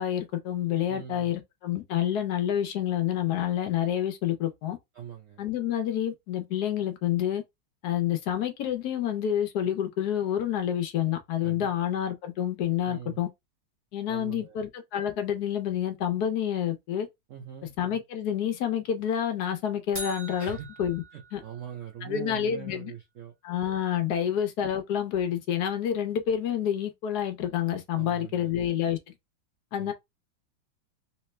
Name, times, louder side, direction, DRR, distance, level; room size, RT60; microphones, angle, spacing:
voice 1, 0.0-4.8 5.4-7.4 7.8-13.3 13.9-17.1 17.8-21.0 21.3-21.4 22.0-22.9 23.4-29.0 29.7-29.9, left 10 dB, 70° left, 0.9 m, -28 dB
voice 2, 0.9-1.3 4.9-5.4 11.4-11.7 12.8-13.2 14.1-14.6 17.3-17.7 20.4-20.7 21.1-23.3 27.9-28.5 29.8-29.9, right 8 dB, 85° right, 0.7 m, -42 dB
sound 1, 19.9-22.1, right 1 dB, 35° right, 1.0 m, -42 dB
3.3 x 3.0 x 3.2 m
omnidirectional pair, 2.3 m